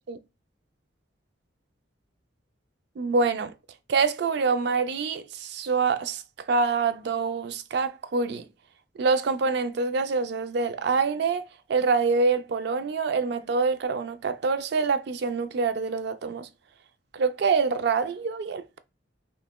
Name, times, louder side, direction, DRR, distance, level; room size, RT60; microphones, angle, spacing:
voice 1, 3.0-3.5 3.9-6.2 6.5-8.5 9.0-11.4 11.7-16.5 17.1-18.8, right 4 dB, 60° right, 0.3 m, -25 dB
5.7 x 2.1 x 2.2 m
head